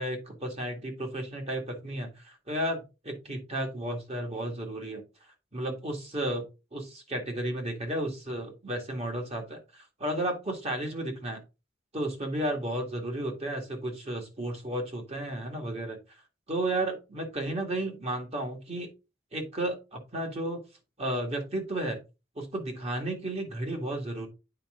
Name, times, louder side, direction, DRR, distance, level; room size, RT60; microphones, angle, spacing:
voice 1, 0.0-5.0 5.5-11.4 11.9-16.0 16.5-18.9 19.3-20.6 21.0-22.0 22.4-24.3, right 1 dB, 35° right, 2 dB, 2.1 m, -33 dB
9.0 x 4.7 x 3.8 m, 0.28 s
head